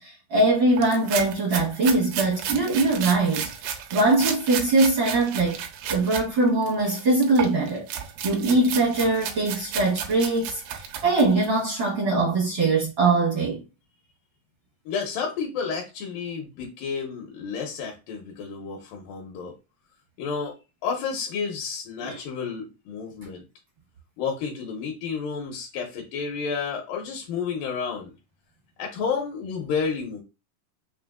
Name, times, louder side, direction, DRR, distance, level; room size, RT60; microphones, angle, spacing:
voice 1, 0.0-5.6 5.9-7.9 8.2-10.6 11.0-13.6 22.0-22.2, right 2 dB, 65° right, 1.2 m, -22 dB
sound 1, 0.8-6.3 6.6-11.6, right 8 dB, 80° right, 2.3 m, -33 dB
voice 2, 14.9-19.6 20.2-20.6 20.8-23.4 24.2-28.1 28.8-30.2, left 5 dB, 80° left, 2.5 m, -31 dB
5.7 x 2.7 x 2.4 m
omnidirectional pair, 4.1 m